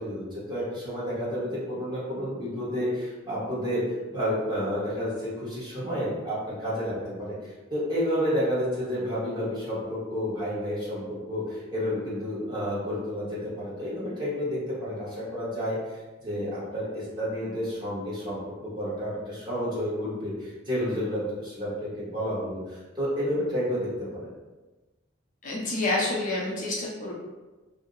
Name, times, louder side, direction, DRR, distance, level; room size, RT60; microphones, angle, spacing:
voice 1, 0.0-3.8 4.1-24.3, equal, 20° right, -9 dB, 1.1 m, -30 dB
voice 2, 25.4-27.1, left 2 dB, 40° left, -4 dB, 0.6 m, -28 dB
2.7 x 2.0 x 3.7 m, 1.2 s
head